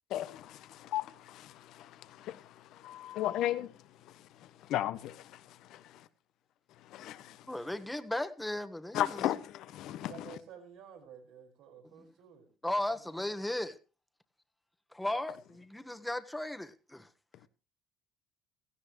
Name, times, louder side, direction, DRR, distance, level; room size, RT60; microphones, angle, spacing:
voice 1, 0.1-6.1 6.8-7.5 8.9-10.4, left 13 dB, 65° left, 1.1 m, -36 dB
voice 2, 7.5-9.2 12.6-13.8 14.9-17.1, left 1 dB, 5° left, 1.5 m, -36 dB
voice 3, 9.9-13.3, right 7 dB, 70° right, 5.1 m, -53 dB
17.0 x 16.0 x 3.2 m
supercardioid pair, 75°, 0 cm